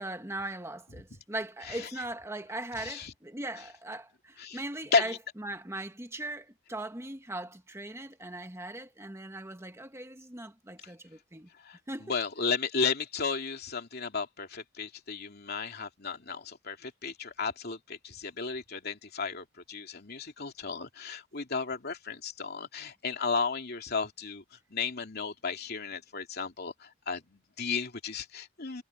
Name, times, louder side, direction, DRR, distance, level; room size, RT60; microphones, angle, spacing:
voice 1, 0.0-11.5 11.9-12.2, right 2 dB, 15° right, 1.5 m, -39 dB
voice 2, 2.8-3.1 4.4-4.6 4.9-5.2 11.6-11.8 12.1-24.4 24.7-28.8, left 5 dB, 50° left, 2.8 m, -34 dB
head